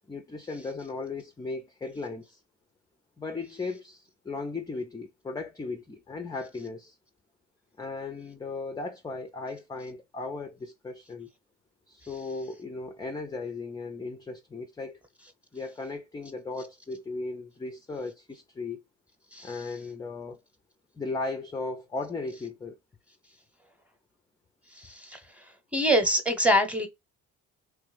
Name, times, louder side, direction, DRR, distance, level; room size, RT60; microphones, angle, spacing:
voice 1, 0.1-2.4 3.2-7.0 7.8-11.3 11.9-15.0 15.5-18.8 19.4-20.4 20.9-22.8, left 3 dB, 10° left, 0.4 m, -36 dB
voice 2, 24.8-25.2 25.7-26.9, equal, 5° right, 0.9 m, -24 dB
3.1 x 2.4 x 3.3 m
hypercardioid pair, 60°, 36 cm